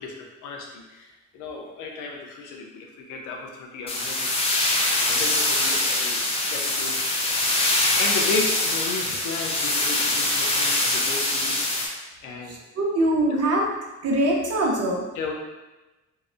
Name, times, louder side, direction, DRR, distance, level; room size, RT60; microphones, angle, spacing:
voice 1, 0.0-4.3 5.1-7.0 8.0-11.9 12.2-12.6 15.1-15.3, left 4 dB, 90° left, 1 dB, 0.5 m, -34 dB
sound 1, 3.9-11.9, left 2 dB, 20° left, 0.4 m, -23 dB
voice 2, 12.5-13.6 14.0-15.1, right 1 dB, 55° right, -1 dB, 0.6 m, -23 dB
2.7 x 2.0 x 2.4 m, 1.1 s
cardioid pair, 90°, 30 cm